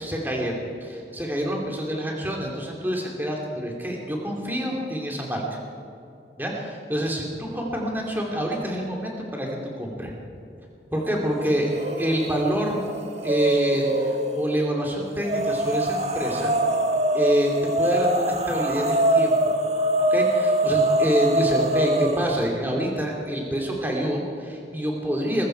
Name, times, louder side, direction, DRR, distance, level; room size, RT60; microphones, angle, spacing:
voice 1, 0.0-5.4 6.4-9.5 9.8-10.1 10.9-11.7 12.0-12.8 13.2-16.5 17.1-17.5 17.8-19.4 20.1-25.5, equal, 10° right, -1 dB, 2.7 m, -26 dB
sound 1, 11.7-12.3 12.6-14.5 15.2-22.4, right 1 dB, 40° right, 1.2 m, -23 dB
21.5 x 14.5 x 4.6 m, 2.7 s
head